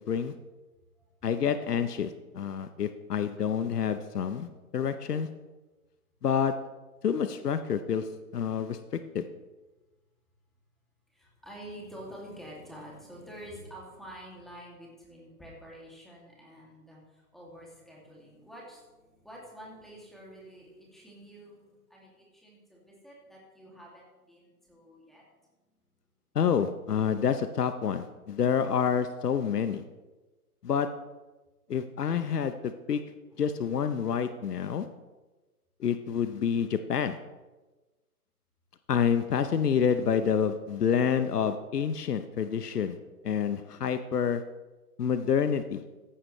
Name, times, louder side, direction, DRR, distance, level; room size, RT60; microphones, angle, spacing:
voice 1, 1.2-5.3 6.2-6.5 7.0-8.1 8.3-8.8 9.1-9.2 26.3-29.8 30.6-30.9 31.7-33.0 33.4-34.9 35.8-37.2 38.9-43.0 43.2-44.4 45.0-45.8, left 7 dB, 85° left, 10 dB, 0.9 m, -28 dB
voice 2, 11.1-25.2, equal, ahead, -4 dB, 2.4 m, -48 dB
14.5 x 11.0 x 3.2 m, 1.2 s
hypercardioid pair, 140°, 46 cm